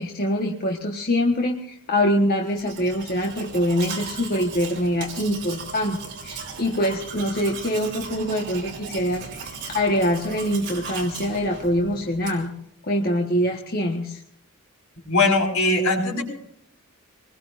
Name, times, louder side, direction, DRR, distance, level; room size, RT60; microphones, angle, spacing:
voice 1, 0.0-12.5 12.8-14.2, equal, 45° left, 1 dB, 1.4 m, -24 dB
Domestic sounds home sounds, 2.5-12.6, right 5 dB, 50° right, 3.8 m, -37 dB
voice 2, 15.1-16.2, left 2 dB, 75° left, 1 dB, 5.2 m, -20 dB
24.5 x 20.5 x 2.6 m, 0.70 s
head